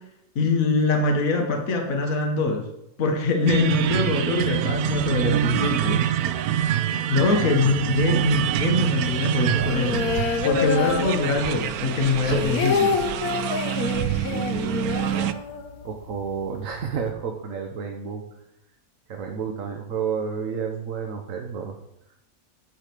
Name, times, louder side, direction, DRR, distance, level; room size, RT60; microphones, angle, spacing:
voice 1, 0.4-2.6 3.0-6.0 7.1-13.0, left 3 dB, 65° left, 2 dB, 1.8 m, -23 dB
sound 1, 3.5-15.3, right 10 dB, 80° right, 1.1 m, -26 dB
sound 2, 9.5-11.7 12.0-15.9 16.2-16.3 16.6-17.1, left 5 dB, 80° left, 1.5 m, -27 dB
voice 2, 14.2-14.8 15.8-18.2 19.1-21.8 22.1-22.2, right 6 dB, 65° right, 3 dB, 1.3 m, -31 dB
10.5 x 5.0 x 7.6 m, 0.83 s
omnidirectional pair, 1.5 m